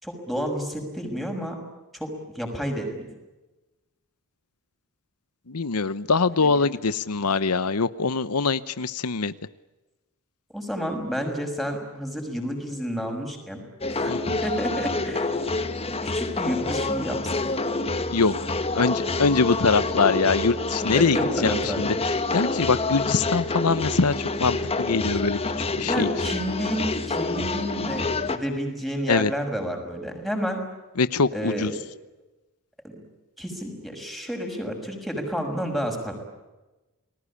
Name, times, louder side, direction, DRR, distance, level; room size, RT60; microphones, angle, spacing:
voice 1, 0.0-1.6 1.9-3.1 6.4-6.6 10.5-13.6 13.9-14.1 14.4-15.3 16.0-17.3 20.9-21.9 25.8-30.6 31.3-31.7 32.8-33.0 33.4-36.1, equal, ahead, 3 dB, 6.2 m, -30 dB
voice 2, 5.5-9.3 14.1-14.4 18.1-18.3 18.7-24.1 24.4-25.4 25.8-26.1 29.1-29.3 31.0-31.7, left 4 dB, 85° left, 15 dB, 0.9 m, -23 dB
sound 1, 13.8-28.4, left 3 dB, 25° left, 1.7 m, -27 dB
30.0 x 20.5 x 8.5 m, 1.1 s
head